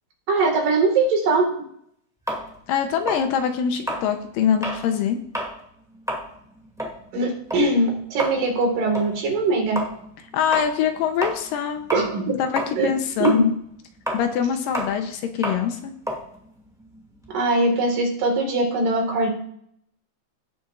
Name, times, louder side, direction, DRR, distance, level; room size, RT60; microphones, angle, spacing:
voice 1, 0.3-1.4 7.1-9.8 11.9-12.2 12.8-12.9 13.2-13.4 17.3-19.3, right 2 dB, 65° right, 1 dB, 3.5 m, -21 dB
sound 1, 2.3-4.9 5.2-5.6 5.9-12.3 12.5-17.3, equal, ahead, 1.5 m, -31 dB
voice 2, 2.7-5.2 10.3-11.8 12.4-13.5 14.1-15.9, left 8 dB, 75° left, 6 dB, 2.4 m, -23 dB
17.5 x 7.0 x 2.5 m, 0.68 s
omnidirectional pair, 4.1 m